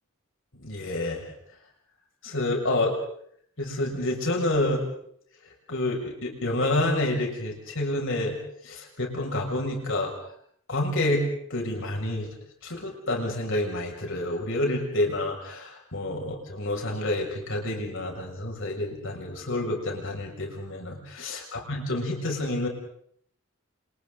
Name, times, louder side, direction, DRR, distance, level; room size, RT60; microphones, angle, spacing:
voice 1, 0.6-1.3 2.2-3.0 3.6-4.9 5.7-8.4 8.6-10.1 10.7-12.3 12.6-22.7, left 1 dB, 65° left, 1 dB, 7.0 m, -28 dB
30.0 x 29.5 x 4.1 m, 0.66 s
head